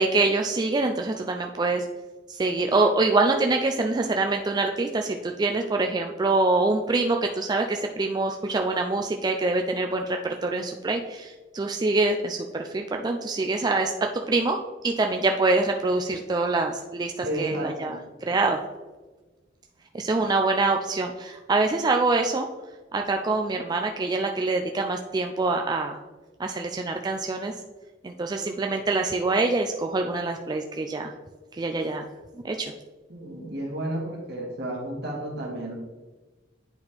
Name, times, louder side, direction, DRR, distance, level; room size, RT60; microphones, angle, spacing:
voice 1, 0.0-1.9 2.3-18.0 18.2-18.6 19.9-22.5 22.9-26.0 26.4-27.5 28.0-31.1 31.6-32.1 32.4-32.7, right 3 dB, 20° right, 3 dB, 0.3 m, -25 dB
voice 2, 17.2-18.1 33.1-35.7, right 1 dB, 60° right, 0 dB, 1.7 m, -32 dB
9.4 x 4.2 x 3.4 m, 1.2 s
head